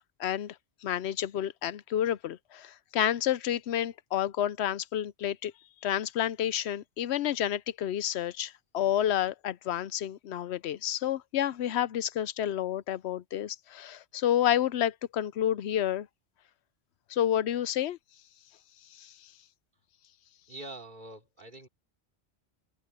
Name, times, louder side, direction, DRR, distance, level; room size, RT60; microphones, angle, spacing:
voice 1, 0.2-0.5 0.8-5.5 5.8-16.1 17.1-18.0 19.0-19.1, left 11 dB, 80° left, 0.9 m, -30 dB
voice 2, 20.5-21.7, right 2 dB, 45° right, 3.5 m, -44 dB
open air
omnidirectional pair, 1.1 m